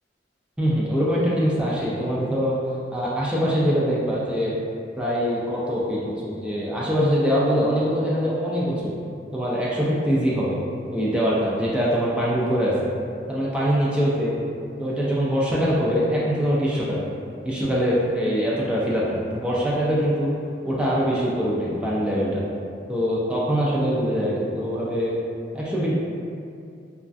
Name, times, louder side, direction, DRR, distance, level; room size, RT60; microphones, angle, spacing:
voice 1, 0.6-2.6 2.9-4.5 5.0-8.9 9.3-10.6 10.9-12.7 13.3-14.3 14.8-17.0 17.4-20.3 20.6-22.4 22.9-25.2 25.5-26.0, equal, 5° right, -7 dB, 0.3 m, -23 dB
3.1 x 2.3 x 2.5 m, 2.4 s
head